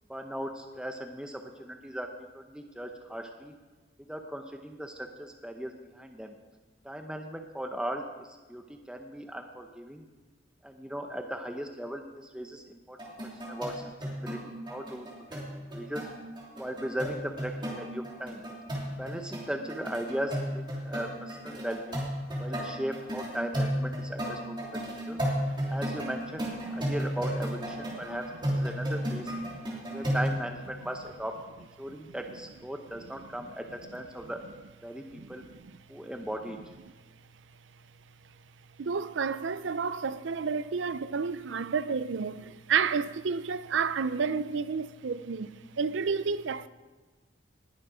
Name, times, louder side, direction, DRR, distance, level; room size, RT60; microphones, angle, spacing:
voice 1, 0.1-2.1 2.3-3.5 4.1-6.3 6.8-10.0 10.6-13.0 13.5-15.4 15.7-16.1 16.6-18.4 19.0-22.1 22.4-24.7 25.1-25.2 25.7-29.3 29.9-31.3 31.6-34.4 34.8-35.4 35.9-36.6, equal, 5° right, 0.7 m, -38 dB
sound 1, 13.0-30.3, equal, 25° right, 3.0 m, -33 dB
voice 2, 35.1-35.8 38.8-46.7, right 5 dB, 75° right, 0.5 m, -31 dB
19.5 x 7.3 x 5.0 m
head